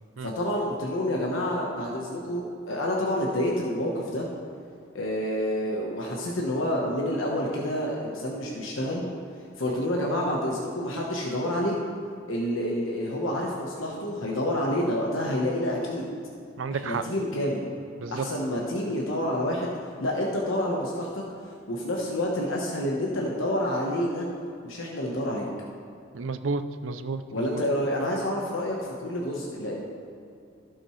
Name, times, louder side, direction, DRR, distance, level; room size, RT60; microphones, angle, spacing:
voice 1, 0.2-4.3 4.9-9.0 9.6-11.8 12.3-16.1 16.7-17.7 18.1-19.7 20.0-21.2 21.7-24.3 24.6-25.5 27.3-29.8, left 1 dB, 90° left, -2 dB, 1.2 m, -28 dB
voice 2, 16.6-17.0 18.0-18.2 26.1-27.2 27.5-27.6, right 4 dB, 80° right, 10 dB, 0.5 m, -31 dB
16.5 x 6.2 x 3.2 m, 2.5 s
head